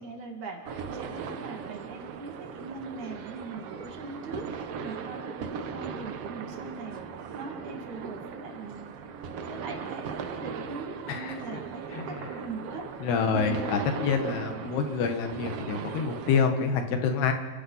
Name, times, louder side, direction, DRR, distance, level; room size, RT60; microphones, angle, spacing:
voice 1, 0.0-7.0 7.3-8.9 9.5-12.9 13.3-13.7, right 3 dB, 50° right, 2 dB, 3.6 m, -40 dB
sound 1, 0.6-16.5, right 6 dB, 80° right, 1.3 m, -38 dB
voice 2, 13.0-17.3, left 5 dB, 85° left, 6 dB, 3.8 m, -27 dB
28.5 x 15.5 x 5.8 m, 1.4 s
omnidirectional pair, 4.5 m